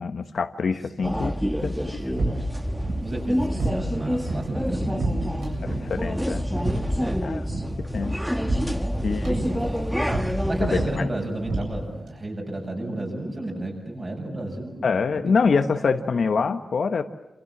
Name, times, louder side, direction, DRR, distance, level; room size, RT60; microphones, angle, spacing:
voice 1, 0.0-1.3 1.6-2.0 5.6-6.5 7.2-7.4 7.8-8.2 9.0-9.2 10.6-11.1 14.8-17.0, left 5 dB, 60° left, 8 dB, 1.2 m, -25 dB
voice 2, 0.9-2.5 3.0-5.9 7.0-7.3 9.2-9.9 10.3-15.4 15.7-16.1, right 1 dB, 30° right, 1 dB, 7.7 m, -33 dB
sound 1, 1.0-11.0, equal, ahead, 1.1 m, -27 dB
sound 2, 1.6-12.1, right 2 dB, 85° right, 7.8 m, -33 dB
28.0 x 27.5 x 7.4 m, 0.92 s
wide cardioid pair, 175°, 0 cm